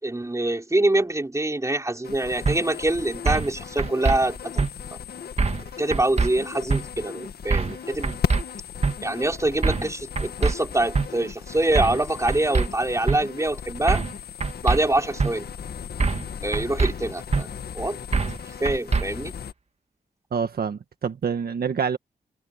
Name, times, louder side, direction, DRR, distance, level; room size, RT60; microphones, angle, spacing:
voice 1, 0.0-4.6 4.9-5.0 5.8-8.2 9.0-14.1 14.6-15.5 16.4-17.5 17.7-18.0 18.5-19.4, right 2 dB, 20° right, 4.5 m, -25 dB
sound 1, 2.0-19.5, left 7 dB, 70° left, 2.0 m, -37 dB
sound 2, 2.4-2.6 3.3-3.5 3.8-4.2 4.6-4.7 5.4-5.6 5.9-6.3 6.7-6.8 7.5-7.8 8.0-8.4 8.8-8.9 9.6-9.9 10.2-10.5 10.9-11.1 11.7-12.0 12.3-12.7 13.1-13.2 13.9-14.1 14.4-14.8 15.2-15.3 16.0-16.3 16.5-16.9 17.3-17.4 18.1-18.4 18.6-19.0, right 4 dB, 40° right, 1.9 m, -23 dB
voice 2, 20.3-22.0, right 6 dB, 70° right, 1.7 m, -26 dB
cardioid pair, 65°, 17 cm